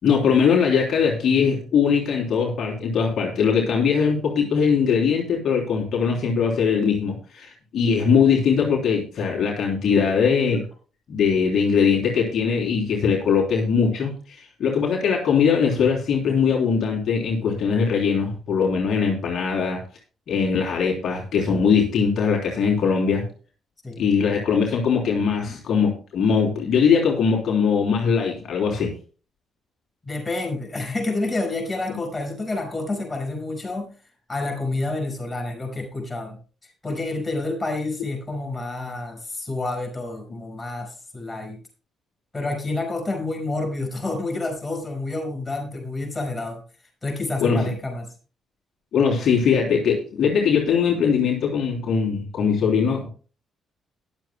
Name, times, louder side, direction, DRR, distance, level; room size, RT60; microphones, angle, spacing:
voice 1, 0.0-10.6 11.1-19.8 20.3-23.2 24.0-28.9 47.4-47.7 48.9-53.1, left 6 dB, 65° left, 0 dB, 3.4 m, -21 dB
voice 2, 30.0-33.9 34.3-36.4 36.8-41.6 42.3-46.6 47.0-48.1, left 2 dB, 20° left, 2 dB, 5.7 m, -29 dB
21.5 x 7.5 x 2.2 m, 0.37 s
cardioid pair, 90°, 0 cm